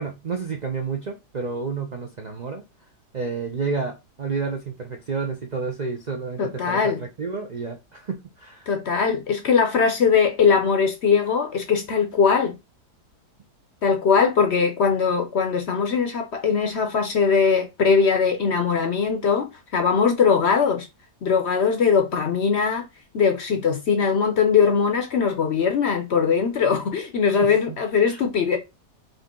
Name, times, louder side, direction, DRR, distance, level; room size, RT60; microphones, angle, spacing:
voice 1, 0.0-2.6 3.1-8.7 27.4-27.8 28.0-28.2, right 4 dB, 85° right, 0.3 m, -30 dB
voice 2, 6.4-7.0 8.7-12.5 13.8-20.9 21.2-22.9 23.1-28.6, left 6 dB, 60° left, 0.7 m, -21 dB
3.9 x 2.8 x 3.7 m
omnidirectional pair, 1.7 m